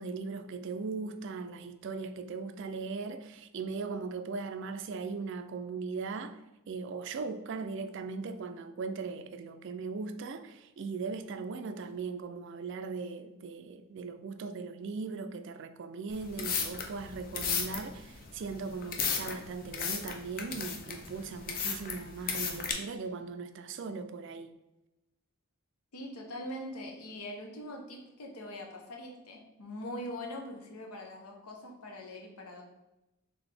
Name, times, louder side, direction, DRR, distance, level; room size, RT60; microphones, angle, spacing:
voice 1, 0.0-6.4 6.7-24.5, right 4 dB, 55° right, 0.3 m, -39 dB
sound 1, 16.1-22.7, left 5 dB, 40° left, 0.5 m, -35 dB
voice 2, 25.9-32.6, left 1 dB, 85° left, 0.9 m, -42 dB
4.0 x 3.5 x 3.3 m
head